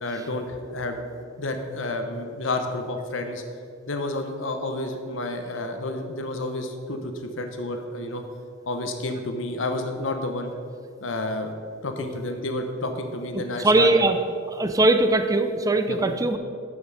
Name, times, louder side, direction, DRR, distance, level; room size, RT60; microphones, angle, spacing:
voice 1, 0.0-1.1 1.4-3.4 3.9-8.2 8.7-10.5 11.0-11.5 11.8-13.9 15.9-16.0, left 2 dB, 75° left, 5 dB, 1.0 m, -30 dB
voice 2, 13.6-14.2 14.5-16.4, right 2 dB, 20° right, 8 dB, 0.5 m, -20 dB
8.4 x 7.0 x 5.7 m, 2.3 s
head